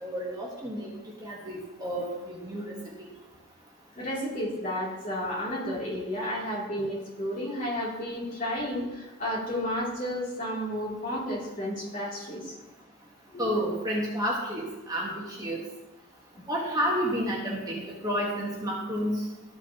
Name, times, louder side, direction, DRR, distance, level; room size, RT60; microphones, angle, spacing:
voice 1, 0.0-0.9 1.2-3.1 13.4-15.6 16.5-19.2, equal, 20° right, -3 dB, 1.3 m, -30 dB
voice 2, 3.9-12.5 13.3-13.5, equal, 40° left, -6 dB, 2.8 m, -32 dB
13.0 x 6.1 x 2.9 m, 1.1 s
head